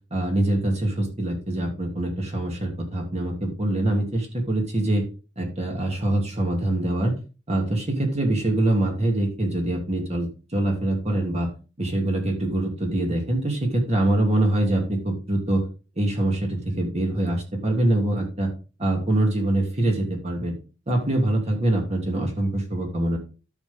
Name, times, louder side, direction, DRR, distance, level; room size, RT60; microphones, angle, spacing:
voice 1, 0.1-5.0 5.4-7.2 7.5-11.5 11.8-13.6 13.9-15.6 16.0-18.5 18.8-20.5 20.9-23.2, right 1 dB, 35° right, 1 dB, 2.7 m, -24 dB
12.0 x 6.2 x 3.7 m, 0.34 s
head